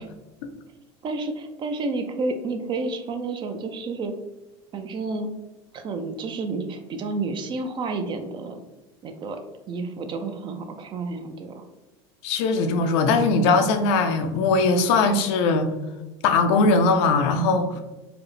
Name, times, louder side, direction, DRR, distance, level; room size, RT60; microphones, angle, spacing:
voice 1, 1.0-4.1 4.7-5.3 5.7-8.6 9.0-9.4 9.7-11.6 17.7-17.8, right 3 dB, 30° right, 7 dB, 0.4 m, -30 dB
voice 2, 12.2-15.7 16.2-17.7, left 3 dB, 75° left, 7 dB, 0.5 m, -20 dB
4.8 x 2.1 x 3.1 m, 1.1 s
supercardioid pair, 125°, 15 cm